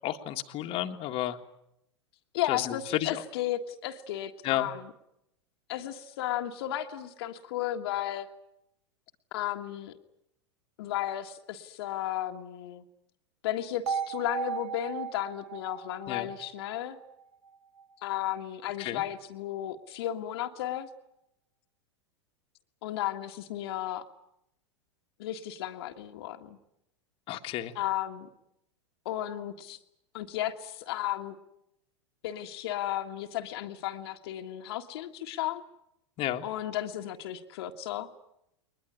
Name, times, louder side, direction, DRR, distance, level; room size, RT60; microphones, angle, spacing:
voice 1, 0.0-1.4 2.5-3.2 4.4-4.7 16.1-16.3 18.8-19.0 27.3-27.7 36.2-36.4, left 13 dB, 35° left, 5 dB, 1.7 m, -31 dB
voice 2, 2.3-4.9 5.7-8.3 9.3-9.9 10.8-12.8 13.4-17.0 18.0-20.9 22.8-24.0 25.2-26.6 27.7-28.3 29.0-29.8 30.1-31.3 32.2-35.6 36.4-38.1, left 12 dB, 55° left, 4 dB, 1.7 m, -34 dB
sound 1, 13.9-17.8, right 6 dB, 65° right, 2.1 m, -37 dB
22.0 x 20.5 x 9.8 m, 0.79 s
figure-of-eight pair, 95°, 15 cm